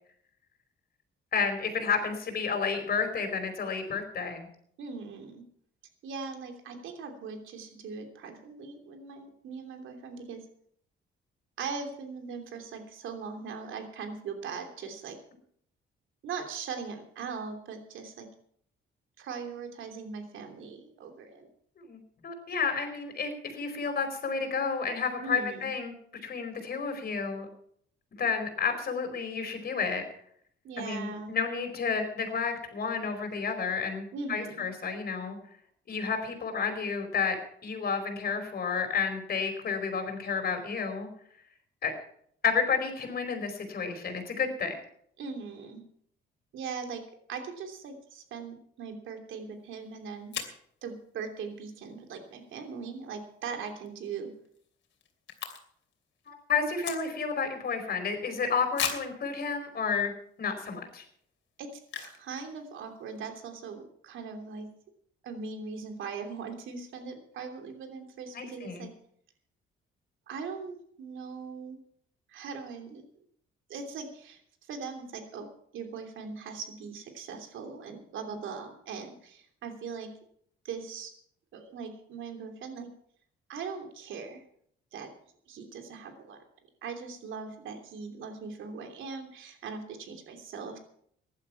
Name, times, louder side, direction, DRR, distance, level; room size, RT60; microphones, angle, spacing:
voice 1, 1.3-4.5 21.8-25.9 26.2-27.5 28.2-30.0 30.8-35.4 35.9-41.1 41.8-41.9 42.4-44.7 56.3-60.1 60.4-61.0 68.3-68.9, left 5 dB, 50° left, 5 dB, 4.7 m, -31 dB
voice 2, 4.8-5.4 6.0-10.4 11.6-15.2 16.2-18.3 19.2-21.5 25.2-25.7 30.6-31.3 34.1-34.7 45.2-45.8 46.5-47.0 47.3-50.4 50.8-54.3 61.6-64.7 65.2-68.9 70.3-71.8 72.3-73.0 73.7-75.5 75.7-80.1 80.6-81.1 81.5-82.9 83.5-84.4 84.9-85.1 85.5-86.4 86.8-90.8, right 5 dB, 80° right, 5 dB, 3.1 m, -40 dB
sound 1, 49.7-49.8 50.3-50.7 53.6-53.9 54.2-54.3 54.4-55.9 56.2-57.4 57.9-58.0 58.7-59.2 59.9-60.0 60.5-60.7 61.8-62.3 62.6-62.7 62.8-63.2, left 8 dB, 65° left, 2.9 m, -36 dB
15.5 x 11.5 x 5.8 m, 0.65 s
cardioid pair, 90°, 20 cm